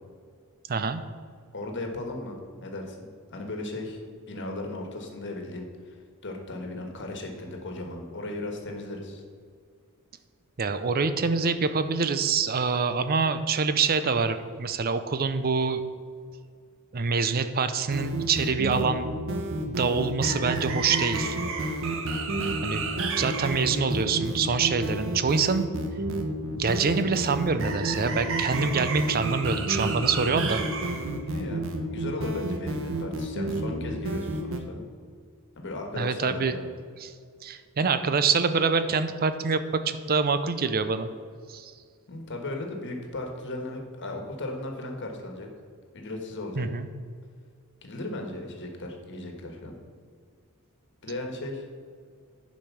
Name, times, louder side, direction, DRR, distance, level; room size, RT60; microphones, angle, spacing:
voice 1, 0.7-1.0 10.6-15.8 16.9-19.1 19.7-21.4 22.6-22.8 23.2-25.7 26.6-30.6 35.9-36.5 37.0-37.1 37.4-41.1 41.5-41.7 46.6-46.9, right 5 dB, 45° right, 11 dB, 0.6 m, -25 dB
voice 2, 1.5-3.0 3.3-6.0 6.2-9.2 31.2-34.8 35.5-36.7 42.1-45.5 45.9-46.7 47.8-49.7 51.0-51.6, left 2 dB, 55° left, 3 dB, 1.5 m, -36 dB
sound 1, 17.9-34.6, right 2 dB, 65° right, 1.0 m, -30 dB
10.5 x 5.2 x 5.8 m, 2.1 s
head